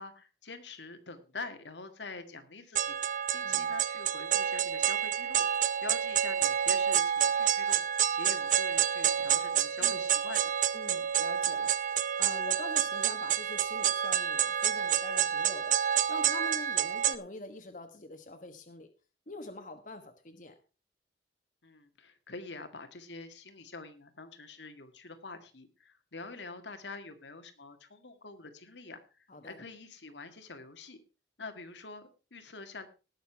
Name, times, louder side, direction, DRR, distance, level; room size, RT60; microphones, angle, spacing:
voice 1, 0.0-10.5 21.6-29.0 29.4-31.0 31.4-32.9, left 3 dB, 80° left, 8 dB, 1.9 m, -46 dB
sound 1, 2.8-17.2, right 9 dB, 45° right, 0.7 m, -28 dB
voice 2, 3.4-3.7 9.8-10.0 10.7-18.9 19.3-20.6 29.3-29.6, left 2 dB, 45° left, 6 dB, 1.3 m, -45 dB
19.0 x 6.9 x 4.5 m, 0.33 s
head